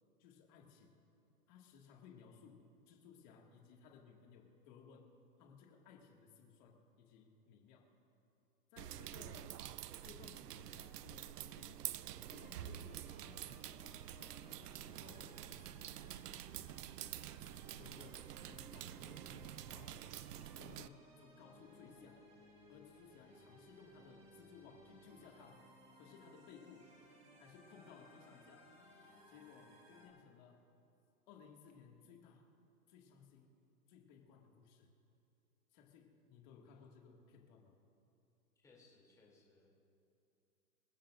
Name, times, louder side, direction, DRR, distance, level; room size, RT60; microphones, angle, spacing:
voice 1, 0.2-1.0 1.5-7.9 8.7-9.6 10.0-11.8 12.3-16.6 17.8-20.2 20.6-22.2 22.7-25.6 26.0-26.9 27.4-28.7 29.3-30.7 31.3-32.5 32.9-33.5 33.9-34.9 35.7-37.7, left 6 dB, 30° left, 0 dB, 2.0 m, -60 dB
sound 1, 8.8-20.9, right 12 dB, 90° right, 0.7 m, -48 dB
sound 2, 12.0-30.1, equal, 15° right, 2.1 m, -62 dB
voice 2, 38.6-39.7, left 3 dB, 5° left, -4 dB, 2.9 m, -66 dB
27.0 x 14.5 x 2.6 m, 2.7 s
hypercardioid pair, 165°, 47 cm